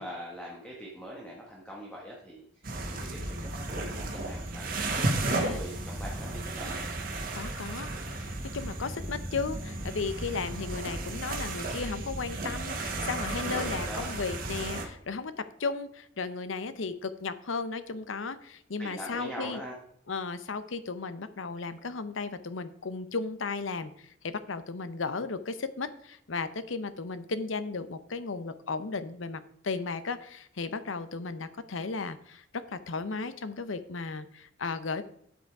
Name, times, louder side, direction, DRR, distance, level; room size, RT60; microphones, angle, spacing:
voice 1, 0.0-2.4 2.8-3.3 3.6-6.8 13.3-14.1 18.8-19.7, equal, 5° left, -3 dB, 1.6 m, -42 dB
sound 1, 2.6-14.8, right 2 dB, 50° right, 1.6 m, -34 dB
voice 2, 5.3-5.6 7.3-19.6 20.1-35.0, left 4 dB, 90° left, 13 dB, 0.8 m, -35 dB
9.2 x 8.0 x 4.7 m, 0.68 s
head